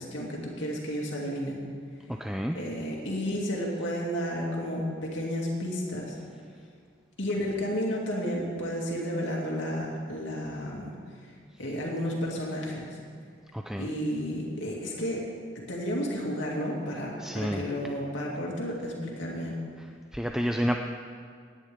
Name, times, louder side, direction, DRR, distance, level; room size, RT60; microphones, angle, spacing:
voice 1, 0.0-1.6 2.5-6.2 7.2-10.9 11.6-13.0 13.8-15.2 15.5-19.6, equal, 85° left, -2 dB, 2.6 m, -32 dB
voice 2, 2.1-2.6 13.5-13.9 17.2-17.7 19.8-19.9 20.1-20.8, equal, 5° right, 3 dB, 0.4 m, -30 dB
17.5 x 10.0 x 3.6 m, 2.1 s
head